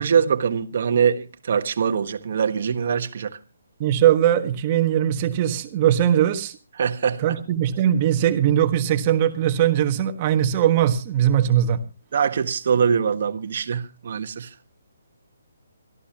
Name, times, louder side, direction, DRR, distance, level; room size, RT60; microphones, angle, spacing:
voice 1, 0.0-3.4 6.8-7.4 12.1-14.5, right 7 dB, 50° right, 1.4 m, -23 dB
voice 2, 3.8-6.6 7.2-11.8, right 10 dB, 25° right, 1.5 m, -20 dB
25.0 x 13.5 x 2.9 m
hypercardioid pair, 165°, 0 cm